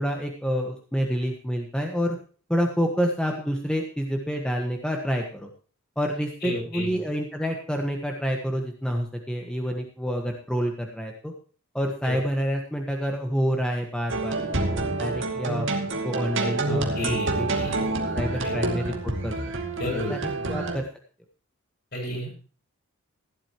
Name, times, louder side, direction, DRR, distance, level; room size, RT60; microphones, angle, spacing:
voice 1, 0.0-2.2 2.5-5.5 5.9-11.3 11.7-15.7 16.0-17.5 18.1-19.3 19.9-20.2 20.5-20.8, equal, 5° left, 2 dB, 1.6 m, -28 dB
voice 2, 6.4-6.9 12.0-12.1 16.7-17.9 18.4-18.5 19.8-20.5 21.9-22.3, left 1 dB, 50° left, -1 dB, 7.4 m, -32 dB
sound 1, 14.1-20.8, right 2 dB, 60° right, 2.5 m, -28 dB
16.5 x 11.5 x 3.1 m, 0.39 s
head